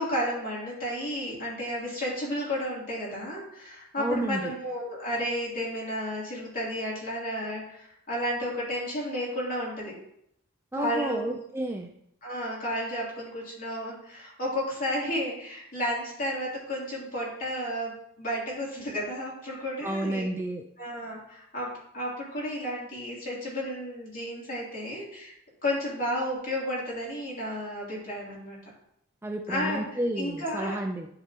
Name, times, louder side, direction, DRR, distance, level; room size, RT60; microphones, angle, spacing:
voice 1, 0.0-10.0 10.7-11.3 12.2-20.3 20.8-25.3 25.6-28.6 29.5-29.8 30.2-30.8, equal, 40° left, -5 dB, 3.0 m, -32 dB
voice 2, 4.0-4.5 10.7-11.9 19.8-20.6 29.2-31.1, right 1 dB, 10° right, 4 dB, 0.5 m, -31 dB
11.5 x 4.7 x 2.9 m, 0.73 s
head